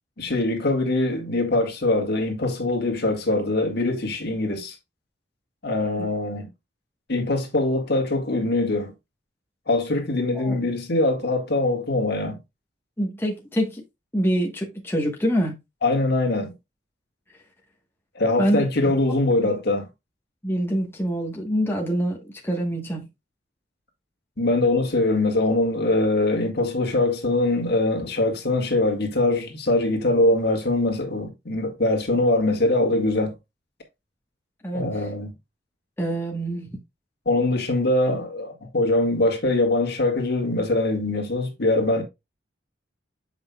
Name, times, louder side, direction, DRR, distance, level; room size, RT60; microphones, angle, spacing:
voice 1, 0.2-4.8 5.6-6.5 7.1-8.9 9.7-12.4 15.8-16.5 18.2-19.9 24.4-33.3 34.7-35.3 37.3-42.0, left 2 dB, 60° left, 1.8 m, -23 dB
voice 2, 13.0-13.8 14.1-15.5 18.4-18.6 19.4-19.5 20.4-23.0 34.6-34.8 36.0-36.7, equal, 10° left, 1.1 m, -25 dB
7.8 x 5.3 x 2.2 m
head